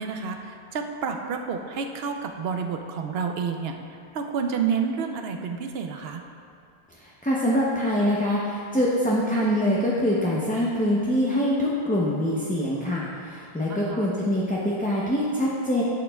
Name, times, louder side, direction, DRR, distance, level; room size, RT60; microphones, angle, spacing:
voice 1, 0.0-3.8 4.1-6.2 13.7-14.1, right 6 dB, 75° right, 4 dB, 0.8 m, -29 dB
voice 2, 7.0-15.8, equal, 10° left, -6 dB, 0.5 m, -24 dB
10.5 x 6.4 x 2.3 m, 2.4 s
omnidirectional pair, 1.0 m